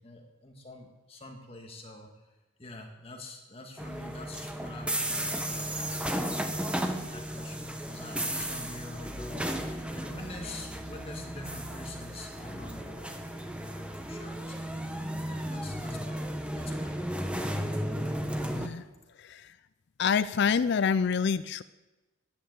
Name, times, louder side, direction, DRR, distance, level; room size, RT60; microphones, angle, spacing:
voice 1, 0.0-2.1 2.6-6.7 7.1-13.2 13.6-14.8 15.2-16.2 16.5-17.6, left 2 dB, 30° left, 2 dB, 2.0 m, -46 dB
sound 1, 3.8-18.7, right 1 dB, 5° right, 0.9 m, -34 dB
voice 2, 18.5-18.8 19.1-19.6 20.0-21.6, left 6 dB, 55° left, 15 dB, 0.4 m, -27 dB
11.0 x 10.0 x 8.0 m, 1.1 s
head